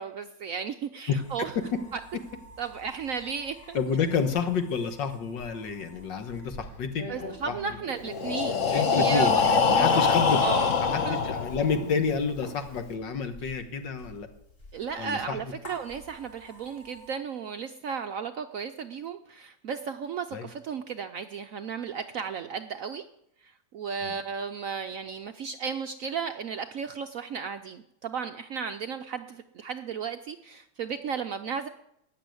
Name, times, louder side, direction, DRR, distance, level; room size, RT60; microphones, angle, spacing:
voice 1, 0.0-1.5 1.9-2.0 2.6-3.8 7.1-10.1 10.4-10.7 11.0-11.2 14.7-23.1 23.4-31.7, right 6 dB, 70° right, 8 dB, 0.8 m, -34 dB
sound 1, 1.2-17.1, equal, 30° left, 4.6 m, -47 dB
voice 2, 3.7-7.5 8.7-14.3 15.0-15.5 20.3-20.5 24.0-24.1, left 5 dB, 75° left, 8 dB, 2.0 m, -29 dB
Breathing, 8.1-12.0, left 5 dB, 50° left, 1.2 m, -24 dB
13.5 x 9.6 x 7.8 m, 0.77 s
omnidirectional pair, 2.0 m